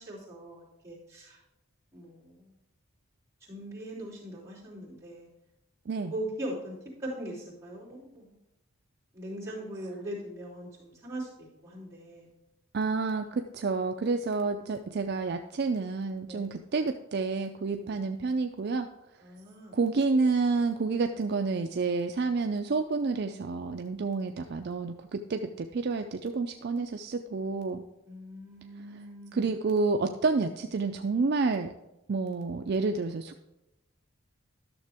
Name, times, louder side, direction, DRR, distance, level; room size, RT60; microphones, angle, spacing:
voice 1, 0.0-1.4 1.9-2.5 3.5-5.3 6.1-8.4 9.1-12.3 16.2-16.5 17.8-18.0 19.2-19.8 28.0-29.5, right 1 dB, 10° right, -8 dB, 3.3 m, -41 dB
voice 2, 12.7-18.9 19.7-27.8 29.3-31.7 32.1-33.4, right 4 dB, 50° right, 6 dB, 0.4 m, -29 dB
12.0 x 6.6 x 3.5 m, 0.93 s
head